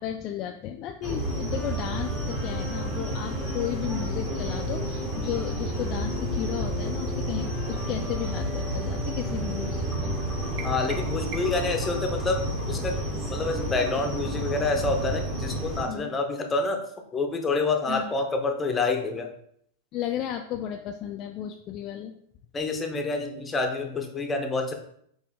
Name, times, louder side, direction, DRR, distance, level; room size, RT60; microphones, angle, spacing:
voice 1, 0.0-10.1 15.9-16.1 17.9-18.1 19.9-22.1, left 10 dB, 45° left, 4 dB, 0.3 m, -34 dB
sound 1, 1.0-15.8, equal, 15° right, 1.4 m, -30 dB
voice 2, 10.6-13.0 13.3-16.8 17.1-19.3 22.5-24.7, left 3 dB, 20° left, 4 dB, 0.7 m, -27 dB
sound 2, 10.6-11.8, right 7 dB, 50° right, 0.4 m, -41 dB
4.6 x 2.6 x 3.5 m, 0.67 s
hypercardioid pair, 105°, 0 cm